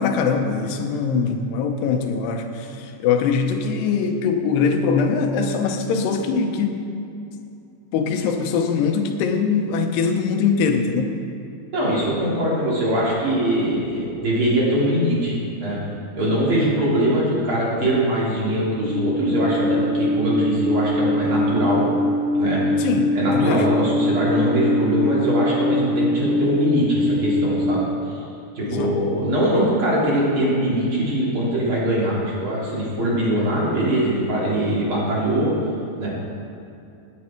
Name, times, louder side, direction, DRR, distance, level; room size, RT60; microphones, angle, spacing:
voice 1, 0.0-6.8 7.9-11.1 22.8-23.7 28.6-29.0, left 5 dB, 85° left, 5 dB, 3.1 m, -22 dB
voice 2, 11.7-15.8 16.2-21.9 22.4-22.6 23.1-28.2 28.5-35.5 36.0-36.1, right 1 dB, 35° right, -6 dB, 4.0 m, -22 dB
Alarm, 18.8-27.7, left 1 dB, 25° left, 2.3 m, -22 dB
17.0 x 10.5 x 4.5 m, 2.6 s
omnidirectional pair, 4.6 m